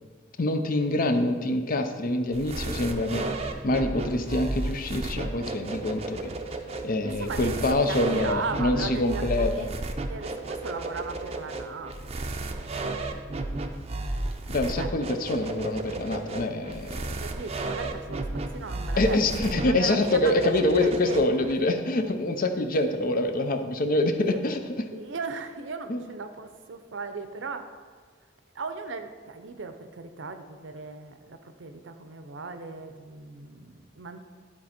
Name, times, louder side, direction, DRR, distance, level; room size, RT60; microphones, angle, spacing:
voice 1, 0.4-6.3 6.8-9.7 14.5-17.2 19.0-24.9 25.9-26.0, left 2 dB, 50° left, 7 dB, 0.6 m, -26 dB
sound 1, 2.3-21.5, right 2 dB, 35° right, 0.5 m, -33 dB
voice 2, 7.2-9.8 10.1-12.1 12.4-12.8 14.7-14.9 16.8-19.2 19.7-21.5 22.6-22.8 24.2-24.4 24.9-27.8 28.5-34.2, right 4 dB, 70° right, 8 dB, 0.7 m, -37 dB
12.0 x 4.2 x 4.4 m, 1.5 s
head